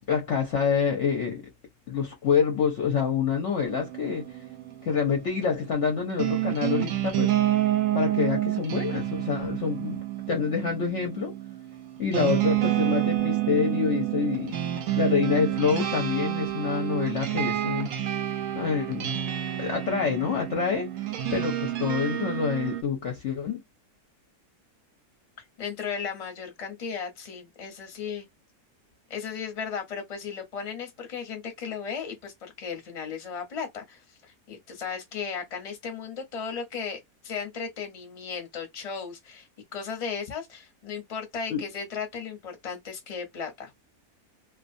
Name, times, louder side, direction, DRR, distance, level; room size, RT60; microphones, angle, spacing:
voice 1, 0.1-1.4 1.9-4.3 4.8-7.3 7.9-11.4 12.0-14.6 15.0-17.9 18.5-19.1 19.6-20.9 21.3-23.6 41.5-41.6, left 6 dB, 60° left, 0.8 m, -27 dB
sound 1, 3.7-22.8, right 13 dB, 65° right, 0.8 m, -29 dB
voice 2, 25.6-28.2 29.1-43.7, left 6 dB, 30° left, 0.7 m, -36 dB
2.5 x 2.2 x 2.5 m
omnidirectional pair, 1.7 m